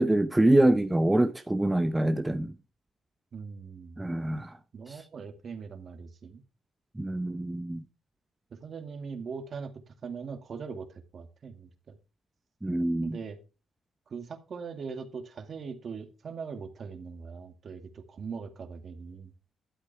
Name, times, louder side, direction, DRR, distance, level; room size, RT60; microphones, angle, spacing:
voice 1, 0.0-2.5 4.0-4.5 7.0-7.8 12.6-13.2, right 1 dB, 10° right, 0.8 m, -25 dB
voice 2, 3.3-4.0 4.7-6.4 8.5-12.0 13.0-13.4 14.1-19.3, right 5 dB, 50° right, 2.3 m, -41 dB
12.5 x 8.2 x 3.5 m
cardioid pair, 90°, 0 cm